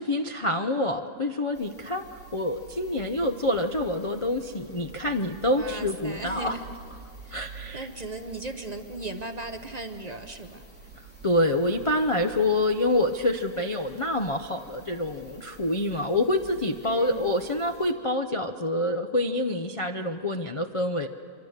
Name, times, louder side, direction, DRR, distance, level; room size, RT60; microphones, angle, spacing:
voice 1, 0.0-2.1 2.3-6.6 7.3-7.9 11.2-21.1, left 1 dB, 45° left, 3 dB, 0.4 m, -26 dB
sound 1, 1.5-17.9, right 3 dB, 5° left, 3.7 m, -48 dB
voice 2, 5.4-6.6 7.2-7.4 7.7-10.7 16.8-17.3, right 2 dB, 40° right, 7 dB, 0.6 m, -37 dB
25.0 x 24.5 x 6.6 m, 2.3 s
omnidirectional pair, 1.7 m